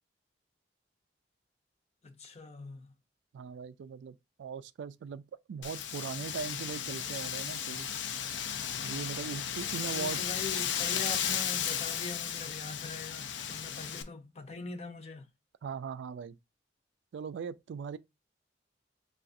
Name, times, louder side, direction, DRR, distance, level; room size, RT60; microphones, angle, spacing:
voice 1, 2.0-2.9 9.8-15.3, left 3 dB, 35° left, 0.7 m, -43 dB
voice 2, 3.3-5.2 5.5-7.9 8.8-10.2 15.6-16.4 17.1-18.0, right 6 dB, 85° right, 0.3 m, -40 dB
Wind, 5.6-14.0, left 9 dB, 90° left, 0.5 m, -35 dB
5.7 x 2.4 x 2.5 m
head